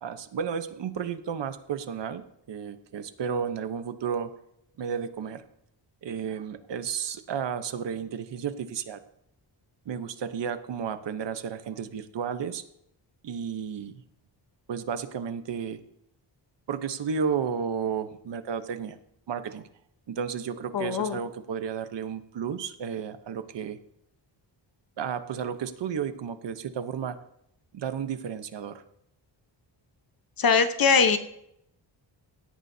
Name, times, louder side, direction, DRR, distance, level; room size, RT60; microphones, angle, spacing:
voice 1, 0.0-2.2 2.5-4.3 4.8-5.4 6.0-9.0 9.9-12.6 13.2-13.9 14.7-15.8 16.7-19.0 19.3-19.7 20.1-23.8 25.0-27.2 27.7-28.8, right 7 dB, 65° right, 10 dB, 1.0 m, -32 dB
voice 2, 20.7-21.2 30.4-31.2, left 5 dB, 50° left, 8 dB, 1.1 m, -21 dB
17.0 x 13.5 x 2.8 m, 0.76 s
wide cardioid pair, 170°, 46 cm